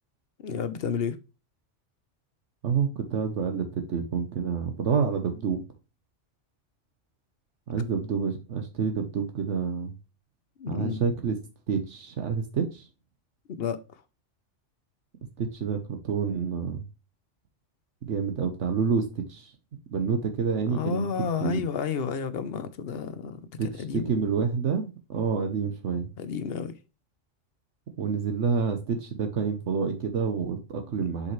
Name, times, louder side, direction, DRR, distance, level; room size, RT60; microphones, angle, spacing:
voice 1, 0.4-1.2 10.6-11.0 13.6-13.8 20.7-24.1 26.2-26.8 31.0-31.1, left 6 dB, 60° left, 0.9 m, -31 dB
voice 2, 2.6-5.6 7.7-9.9 10.7-11.4 11.7-12.9 15.4-16.8 18.0-19.5 19.9-21.1 21.4-21.6 23.6-26.1 28.0-31.3, right 6 dB, 75° right, 1.2 m, -28 dB
7.0 x 5.2 x 3.1 m
omnidirectional pair, 1.2 m